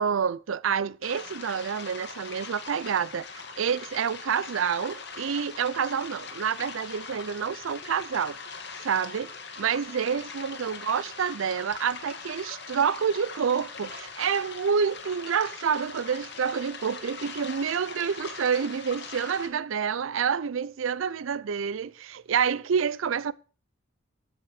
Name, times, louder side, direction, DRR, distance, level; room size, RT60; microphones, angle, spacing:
voice 1, 0.0-3.3 3.6-8.4 8.8-9.3 9.6-23.3, right 7 dB, 80° right, 0.4 m, -28 dB
sound 1, 1.0-19.5, left 4 dB, 55° left, 1.9 m, -41 dB
12.5 x 8.7 x 4.8 m
head